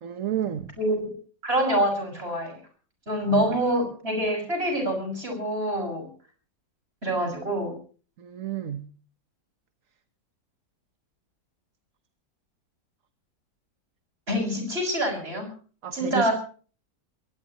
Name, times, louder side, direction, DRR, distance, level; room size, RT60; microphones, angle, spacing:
voice 1, 0.0-0.7 3.3-3.5 8.2-8.9 15.8-16.3, right 10 dB, 55° right, 1.3 m, -31 dB
voice 2, 0.8-1.1 1.4-2.6 3.1-6.1 7.0-7.7 14.3-15.5 15.9-16.3, equal, 35° right, 6.7 m, -26 dB
23.0 x 18.5 x 3.0 m
omnidirectional pair, 1.9 m